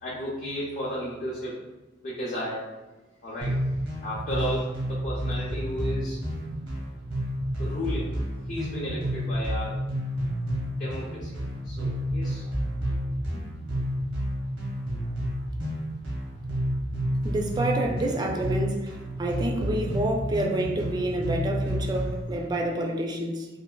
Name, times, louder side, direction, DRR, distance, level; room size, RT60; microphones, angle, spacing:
voice 1, 0.0-1.6 2.0-2.7 3.2-3.7 4.0-6.2 7.6-8.1 8.4-9.7 10.8-11.4 11.6-12.5 13.3-13.4, equal, 45° left, -6 dB, 0.5 m, -33 dB
sound 1, 3.4-22.2, equal, 80° right, 0.9 m, -30 dB
voice 2, 17.2-23.5, right 1 dB, 20° right, 1 dB, 0.3 m, -28 dB
3.2 x 2.2 x 2.3 m, 1.1 s
head